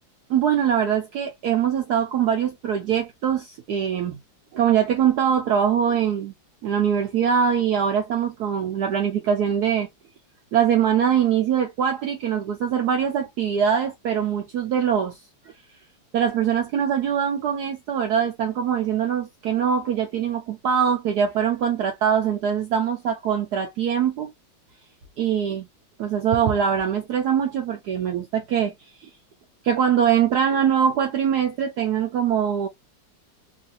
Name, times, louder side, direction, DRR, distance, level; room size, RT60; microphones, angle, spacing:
voice 1, 0.3-4.2 4.5-6.3 6.6-9.9 10.5-15.2 16.1-24.3 25.2-25.7 26.0-28.7 29.0-29.1 29.6-32.7, right 8 dB, 65° right, 1.1 m, -22 dB
3.2 x 2.7 x 2.6 m
omnidirectional pair, 2.1 m